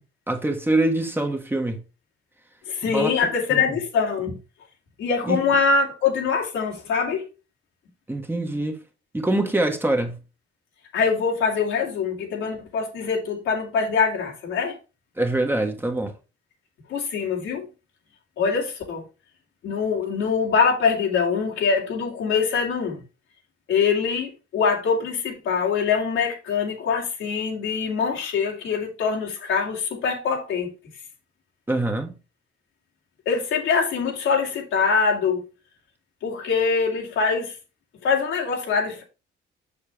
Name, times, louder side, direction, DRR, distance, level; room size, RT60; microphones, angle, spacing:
voice 1, 0.3-1.8 2.8-3.1 3.5-3.6 5.2-5.4 8.1-8.8 9.1-10.2 15.2-16.1 31.7-32.2, right 2 dB, 10° right, 1.3 m, -24 dB
voice 2, 2.7-4.4 5.0-7.2 10.9-14.8 16.9-17.7 18.4-19.0 19.6-23.0 23.7-30.7 33.3-35.5 36.2-37.6 38.0-39.0, left 5 dB, 85° left, 2.6 m, -23 dB
6.9 x 6.4 x 3.3 m
cardioid pair, 90°, 20 cm